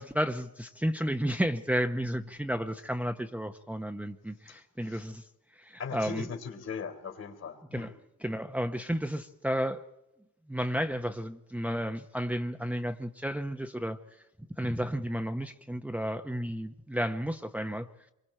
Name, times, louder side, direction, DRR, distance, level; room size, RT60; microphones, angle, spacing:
voice 1, 0.0-5.3 5.5-6.3 7.7-7.9 8.2-9.8 10.5-14.2 14.6-17.9, equal, 5° right, 0.9 m, -32 dB
voice 2, 4.5-5.1 5.8-7.9, left 6 dB, 55° left, 3.7 m, -39 dB
26.0 x 23.5 x 4.4 m
cardioid pair, 90°, 30 cm